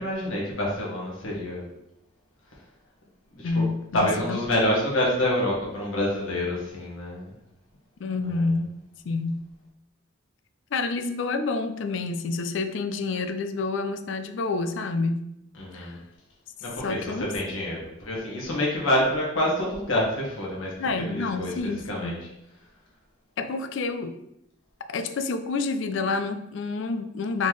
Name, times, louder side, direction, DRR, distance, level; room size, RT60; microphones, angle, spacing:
voice 1, 0.0-1.6 3.3-3.7 3.9-7.3 8.2-8.5 15.6-16.0 16.6-21.5 21.8-22.2, left 1 dB, 80° left, -3 dB, 1.5 m, -27 dB
voice 2, 3.4-4.4 8.0-8.7 9.0-9.4 10.7-15.2 15.7-16.0 16.8-17.3 20.8-22.2 23.4-24.1 24.9-27.5, left 3 dB, 65° left, 9 dB, 0.4 m, -28 dB
4.3 x 3.7 x 3.1 m, 0.83 s
head